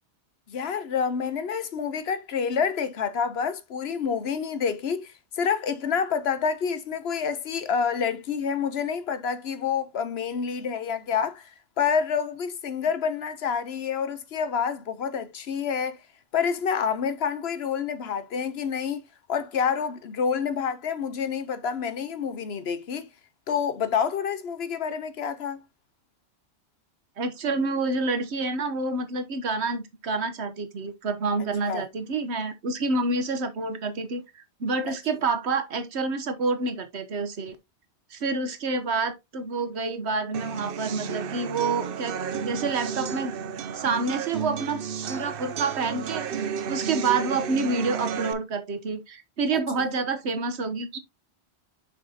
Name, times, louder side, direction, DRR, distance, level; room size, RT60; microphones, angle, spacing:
voice 1, 0.5-11.5 11.8-16.0 16.3-19.0 19.3-23.1 23.5-25.6 31.7-31.8 34.9-35.0, left 6 dB, 70° left, 1.0 m, -28 dB
voice 2, 27.2-37.6 38.1-43.3 43.7-44.8 45.1-51.0, right 3 dB, 75° right, 1.3 m, -28 dB
sound 1, 40.3-48.3, right 7 dB, 60° right, 0.8 m, -32 dB
6.5 x 6.0 x 2.8 m
omnidirectional pair, 1.1 m